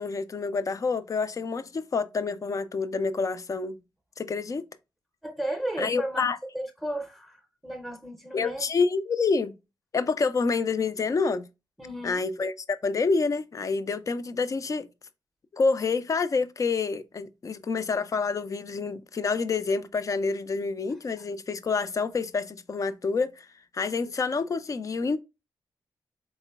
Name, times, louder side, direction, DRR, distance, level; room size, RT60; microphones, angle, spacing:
voice 1, 0.0-3.8 4.2-4.7 5.8-6.4 8.3-9.5 9.9-11.4 12.0-14.9 15.5-23.5 23.7-25.2, left 4 dB, 45° left, 0.4 m, -28 dB
voice 2, 5.2-6.3 6.5-8.7 11.8-12.2, right 1 dB, ahead, 0.6 m, -34 dB
3.7 x 3.0 x 2.2 m
cardioid pair, 55°, 8 cm